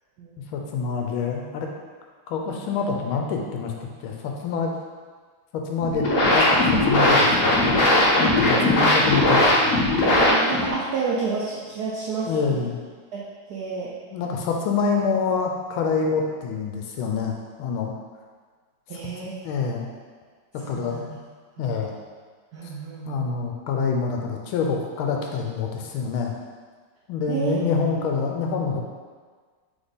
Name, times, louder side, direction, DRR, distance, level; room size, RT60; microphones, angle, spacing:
voice 1, 0.5-1.7 2.3-4.8 5.5-7.5 8.2-9.9 12.2-12.8 14.1-17.9 18.9-19.0 19.4-19.9 20.5-21.1 21.6-21.9 23.0-26.3 27.1-28.9, left 5 dB, 80° left, 1 dB, 1.4 m, -26 dB
sound 1, 5.8-10.8, left 1 dB, 55° left, 0.9 m, -19 dB
voice 2, 8.6-8.9 10.3-12.6 13.1-13.2 13.5-13.9 18.9-19.4 20.6-21.0 21.6-21.7 22.5-23.4 27.3-27.6 28.0-28.1, right 5 dB, 80° right, -5 dB, 0.9 m, -30 dB
3.5 x 3.5 x 4.0 m, 1.5 s
omnidirectional pair, 2.3 m